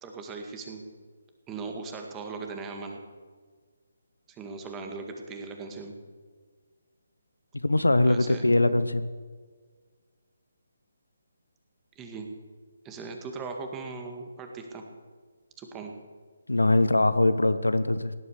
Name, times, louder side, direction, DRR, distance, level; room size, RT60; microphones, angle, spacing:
voice 1, 0.0-0.8 1.5-3.0 4.3-5.9 8.1-8.4 12.0-12.3 12.8-14.9 15.6-15.9, right 4 dB, 15° right, 4 dB, 2.0 m, -39 dB
voice 2, 7.6-9.1 16.5-18.1, left 2 dB, 85° left, 13 dB, 1.0 m, -22 dB
17.5 x 11.0 x 6.8 m, 1.5 s
figure-of-eight pair, 145°, 0 cm